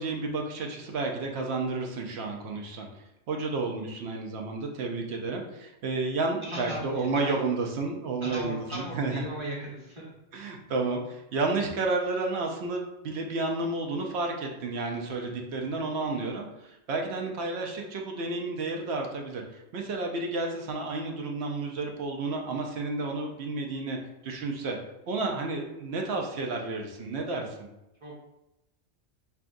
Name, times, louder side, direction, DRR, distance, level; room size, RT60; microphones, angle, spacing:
voice 1, 0.0-2.9 3.3-9.3 10.3-19.4 19.7-24.0 24.2-24.8 25.1-27.7, right 3 dB, 65° right, 1 dB, 0.9 m, -31 dB
voice 2, 6.4-7.3 8.2-10.0 28.0-28.1, right 1 dB, 25° right, -5 dB, 1.2 m, -37 dB
5.6 x 2.3 x 2.5 m, 0.91 s
omnidirectional pair, 1.2 m